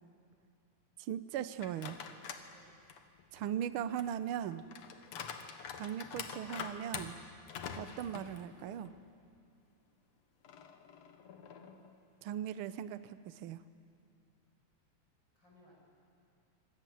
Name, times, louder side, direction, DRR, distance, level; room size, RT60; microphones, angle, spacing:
voice 1, 1.0-2.0 3.3-4.6 5.8-7.2 7.8-8.9 12.2-13.6, right 10 dB, 75° right, 13 dB, 1.2 m, -39 dB
sound 1, 1.6-2.5 2.9-9.0 9.4-9.5 10.4-11.9, left 7 dB, 65° left, 2.3 m, -46 dB
voice 2, 5.0-5.4 15.3-15.7, left 1 dB, 35° left, -3 dB, 7.5 m, -64 dB
25.5 x 21.5 x 9.3 m, 2.4 s
omnidirectional pair, 3.4 m